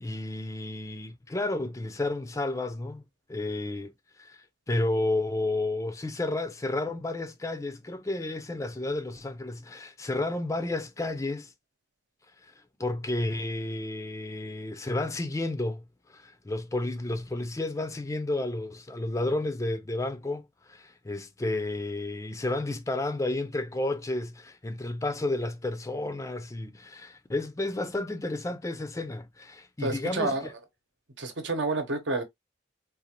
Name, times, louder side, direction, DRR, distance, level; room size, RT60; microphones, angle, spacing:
voice 1, 0.0-3.0 3.3-3.9 4.2-4.4 4.7-11.5 12.4-12.5 12.8-15.8 16.1-30.3, left 2 dB, 15° left, 0.4 m, -31 dB
voice 2, 29.8-30.5 31.2-32.2, right 2 dB, 75° right, 0.9 m, -29 dB
3.9 x 2.4 x 2.9 m
head